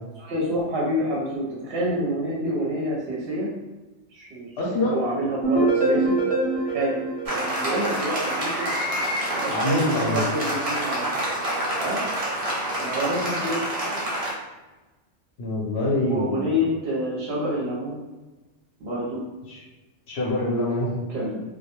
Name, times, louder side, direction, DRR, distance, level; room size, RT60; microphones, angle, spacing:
voice 1, 0.2-3.5 4.1-6.2 6.6-7.0 7.2-8.7 9.3-11.2 11.8-12.0 12.8-13.6 16.0-18.0 18.8-19.2 21.1-21.4, equal, 60° right, -5 dB, 0.8 m, -28 dB
voice 2, 4.6-5.0 9.5-10.2 15.4-16.4 19.5-19.6 20.1-20.9, left 1 dB, 65° left, -4 dB, 0.9 m, -25 dB
sound 1, 5.4-8.4, right 2 dB, 10° left, 0.4 m, -24 dB
Applause, 7.3-14.3, right 1 dB, 40° right, 0.5 m, -27 dB
2.3 x 2.1 x 2.9 m, 1.1 s
omnidirectional pair, 1.2 m